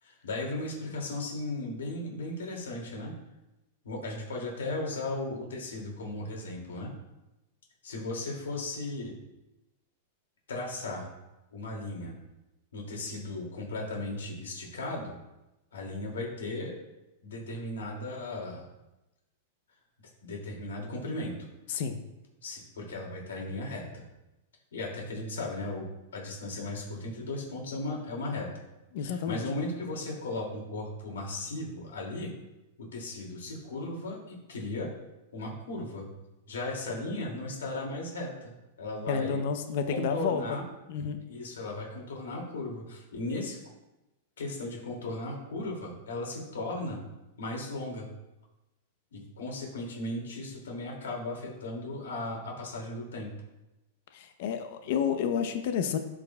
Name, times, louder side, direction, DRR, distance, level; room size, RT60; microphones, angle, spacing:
voice 1, 0.0-3.1 3.8-6.9 7.8-9.2 10.5-11.1 11.5-12.1 12.7-15.1 15.7-16.7 17.2-18.6 20.2-21.3 22.4-24.0 24.7-25.9 26.1-28.5 29.0-32.3 32.8-34.9 35.3-36.1 36.5-38.5 38.8-39.4 39.9-40.6 41.3-43.6 44.4-47.0 47.4-48.1 49.1-53.3, left 2 dB, 85° left, -1 dB, 2.5 m, -36 dB
voice 2, 21.7-22.0 28.9-29.4 39.1-40.6 40.9-41.2 54.1-56.0, left 7 dB, 65° left, 7 dB, 0.7 m, -30 dB
12.5 x 4.9 x 2.3 m, 0.98 s
hypercardioid pair, 115°, 0 cm